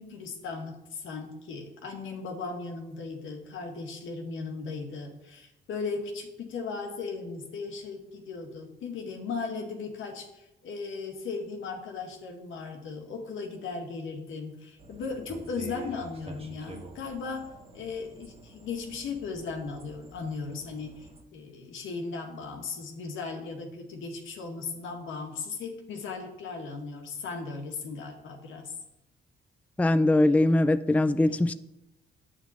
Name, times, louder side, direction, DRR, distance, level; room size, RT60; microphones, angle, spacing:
voice 1, 0.0-28.7 31.3-31.4, left 4 dB, 80° left, 1.8 m, -37 dB
sound 1, 14.8-21.2, right 2 dB, 30° right, 1.6 m, -47 dB
voice 2, 29.8-31.5, left 2 dB, 5° left, 0.4 m, -22 dB
9.1 x 8.2 x 4.3 m
cardioid pair, 90°, 20 cm